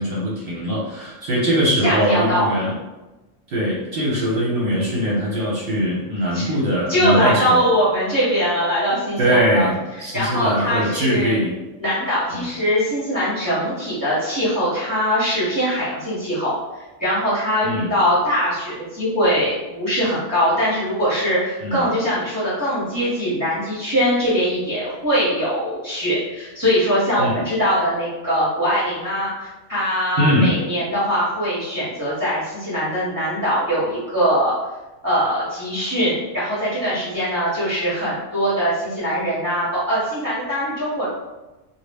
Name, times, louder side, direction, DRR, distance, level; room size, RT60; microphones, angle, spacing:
voice 1, 0.0-2.7 3.5-7.6 9.2-11.6 12.3-12.5 17.6-17.9 21.6-21.9 27.2-27.3 30.2-30.5, equal, 55° right, -5 dB, 0.8 m, -21 dB
voice 2, 1.8-2.5 6.3-6.4 6.9-9.7 10.1-11.4 11.8-16.5 17.0-34.5 35.0-41.1, equal, 20° right, -10 dB, 0.8 m, -22 dB
2.3 x 2.0 x 3.3 m, 1.1 s
omnidirectional pair, 1.3 m